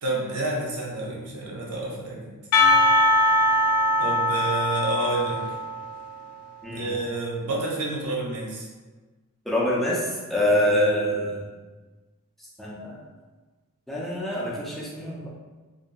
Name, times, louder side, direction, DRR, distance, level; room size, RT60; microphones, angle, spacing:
voice 1, 0.0-2.3 4.0-5.4 6.7-8.7 10.5-10.7, right 2 dB, 80° right, -3 dB, 0.7 m, -29 dB
Percussion, 2.5-6.4, left 1 dB, 90° left, 0.4 m, -22 dB
voice 2, 6.6-6.9 9.5-11.4 12.6-13.0 13.9-15.3, left 1 dB, ahead, -5 dB, 0.4 m, -25 dB
2.6 x 2.5 x 2.2 m, 1.3 s
head